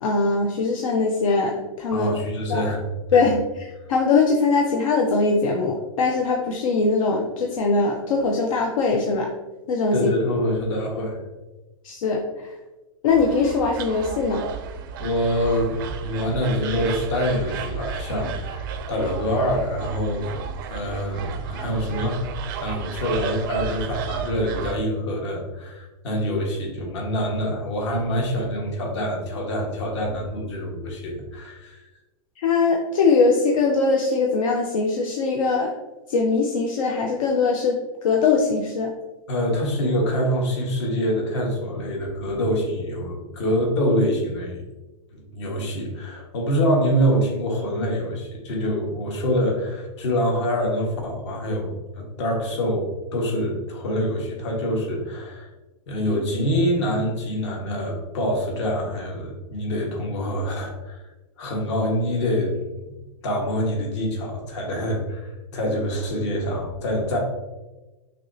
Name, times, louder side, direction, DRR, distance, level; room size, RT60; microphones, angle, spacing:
voice 1, 0.0-2.1 2.5-2.6 3.1-9.3 9.7-10.1 11.8-12.5 13.0-14.4 32.4-35.7 36.1-38.9, left 4 dB, 75° left, 1 dB, 0.6 m, -21 dB
voice 2, 1.9-2.8 3.1-3.2 9.9-11.2 15.0-20.3 20.7-22.2 22.6-31.8 39.3-44.6 45.1-55.5 55.9-61.0 61.4-62.6 63.2-67.2, equal, 55° left, -1 dB, 1.4 m, -25 dB
sound 1, 13.1-24.7, right 6 dB, 40° right, 0.4 m, -33 dB
6.1 x 2.9 x 2.7 m, 1.1 s
supercardioid pair, 170°, 17 cm